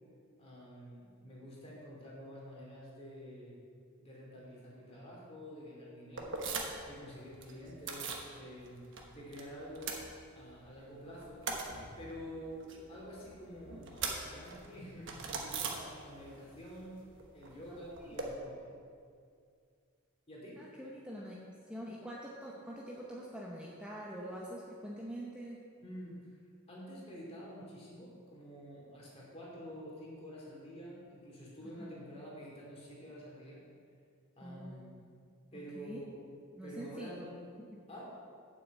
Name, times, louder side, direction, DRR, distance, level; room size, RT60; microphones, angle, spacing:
voice 1, 0.4-3.5 4.0-6.5 6.9-10.0 10.3-11.5 12.0-17.0 17.3-18.7 20.3-20.6 25.8-26.2 26.7-33.6 34.3-35.1 35.5-36.3 36.6-37.4 37.9-38.1, equal, 30° left, -5 dB, 2.7 m, -48 dB
sound 1, 6.2-6.9 7.2-8.3 8.6-9.4 9.7-10.7 11.0-16.4 16.6-18.3, right 4 dB, 60° right, 1.2 m, -41 dB
voice 2, 17.7-18.1 20.6-25.6 31.6-32.0 34.4-34.9 35.5-36.0 36.6-37.3 37.7-37.8, equal, 5° right, -4 dB, 0.7 m, -45 dB
7.7 x 6.2 x 7.8 m, 2.3 s
head